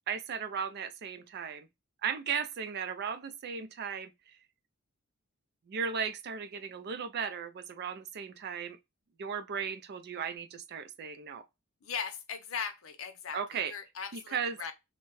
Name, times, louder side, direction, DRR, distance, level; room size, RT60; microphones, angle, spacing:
voice 1, 0.1-1.7 2.0-4.1 5.7-8.8 9.2-11.4 13.3-13.7 14.1-14.6, right 6 dB, 50° right, 0.4 m, -36 dB
voice 2, 11.8-14.7, left 6 dB, 70° left, 0.6 m, -39 dB
2.7 x 2.2 x 2.9 m
head